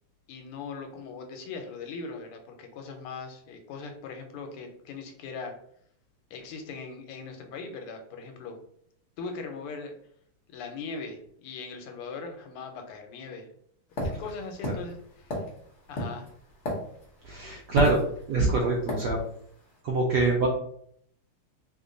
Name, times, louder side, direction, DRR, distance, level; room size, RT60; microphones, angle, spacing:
voice 1, 0.3-5.5 6.3-8.6 9.2-9.9 10.5-13.5 14.0-15.4 15.9-16.3, left 4 dB, 80° left, 4 dB, 1.6 m, -40 dB
sound 1, 14.0-17.2 17.8-18.4 18.9-19.1, left 1 dB, 60° left, 0.7 m, -32 dB
voice 2, 17.2-18.0 18.3-19.2 19.8-20.5, right 3 dB, 75° right, -2 dB, 0.9 m, -24 dB
3.5 x 2.2 x 3.7 m, 0.66 s
omnidirectional pair, 2.4 m